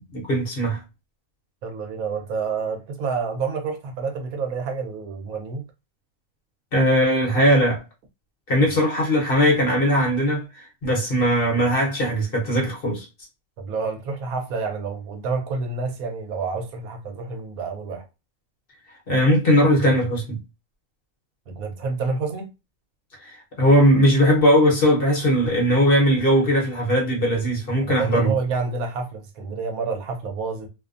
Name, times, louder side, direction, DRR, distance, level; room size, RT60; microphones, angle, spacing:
voice 1, 0.1-0.8 6.7-7.8 8.5-13.1 19.1-20.4 23.2-28.3, equal, 45° left, 0.9 m, -19 dB
voice 2, 1.6-5.6 13.6-18.1 21.5-22.5 27.8-30.7, right 4 dB, 80° right, 1.1 m, -28 dB
2.6 x 2.0 x 2.4 m
omnidirectional pair, 1.5 m